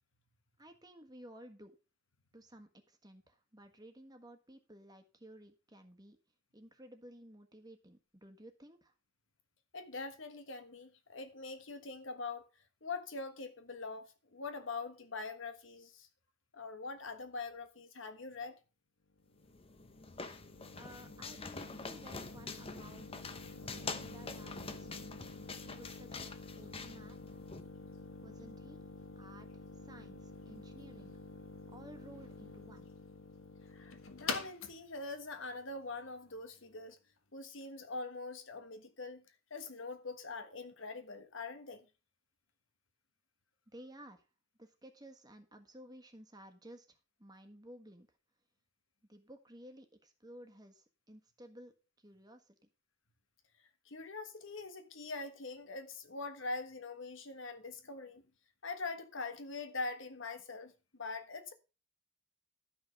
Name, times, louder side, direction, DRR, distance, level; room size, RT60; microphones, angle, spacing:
voice 1, 0.6-1.7 2.3-6.2 6.5-8.9 20.7-23.1 23.6-25.0 25.6-26.2 26.5-27.4 28.2-28.8 29.1-31.2 31.7-32.9 43.7-44.3 44.6-48.1 49.1-51.7 52.0-52.7, right 1 dB, 20° right, 1.5 m, -55 dB
voice 2, 9.7-12.5 12.8-16.1 16.5-18.6 33.7-37.0 37.3-39.2 39.5-41.9 53.8-58.2 58.6-61.5, left 3 dB, 65° left, 1.4 m, -43 dB
sound 1, 19.2-36.8, left 4 dB, 85° left, 1.5 m, -48 dB
sound 2, 19.4-27.6, left 4 dB, 30° left, 0.9 m, -46 dB
12.5 x 5.9 x 5.4 m
head